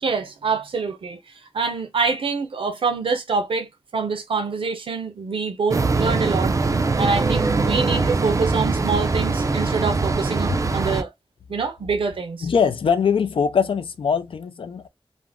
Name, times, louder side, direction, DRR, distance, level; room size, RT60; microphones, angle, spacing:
voice 1, 0.0-1.2 1.5-6.5 7.0-11.1 11.5-12.5, right 4 dB, 85° right, 0.6 m, -25 dB
sound 1, 5.7-11.0, right 3 dB, 40° right, 0.3 m, -22 dB
voice 2, 12.4-14.9, left 6 dB, 80° left, 0.4 m, -22 dB
2.4 x 2.0 x 3.4 m
wide cardioid pair, 75°, 9 cm